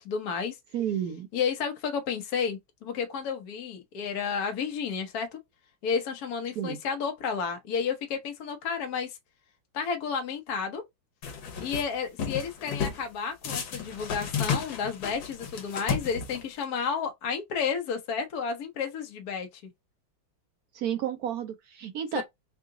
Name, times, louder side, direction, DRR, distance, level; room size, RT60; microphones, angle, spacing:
voice 1, 0.0-0.6 1.3-5.4 5.8-9.2 9.7-10.8 11.6-19.5 22.1-22.2, left 6 dB, 60° left, 1.3 m, -31 dB
voice 2, 0.7-1.3 6.6-6.8 20.7-22.2, right 9 dB, 70° right, 0.9 m, -31 dB
sound 1, 11.2-11.8 12.2-13.0 13.4-16.6, left 6 dB, 75° left, 1.7 m, -32 dB
3.8 x 2.4 x 3.7 m
omnidirectional pair, 2.1 m